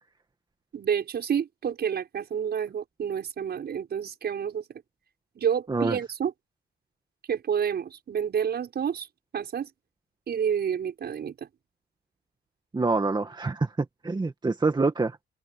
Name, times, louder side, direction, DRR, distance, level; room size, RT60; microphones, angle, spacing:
voice 1, 0.7-4.6 5.3-6.3 7.3-9.1 9.3-9.7 10.3-11.5, right 8 dB, 55° right, 6.5 m, -29 dB
voice 2, 12.7-15.2, right 3 dB, 20° right, 2.1 m, -26 dB
open air
cardioid pair, 90°, 20 cm